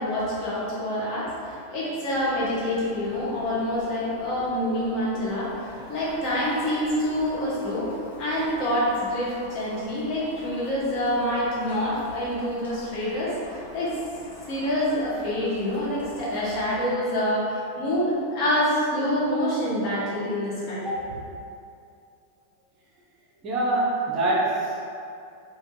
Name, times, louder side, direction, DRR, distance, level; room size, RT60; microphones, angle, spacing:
voice 1, 0.0-14.0 14.5-21.2, equal, 40° left, -8 dB, 1.1 m, -27 dB
Boiling, 2.1-16.9, equal, 70° left, 0.9 m, -44 dB
voice 2, 23.4-24.9, right 2 dB, 35° right, -4 dB, 0.6 m, -24 dB
3.1 x 2.3 x 3.3 m, 2.5 s
figure-of-eight pair, 90°, 0 cm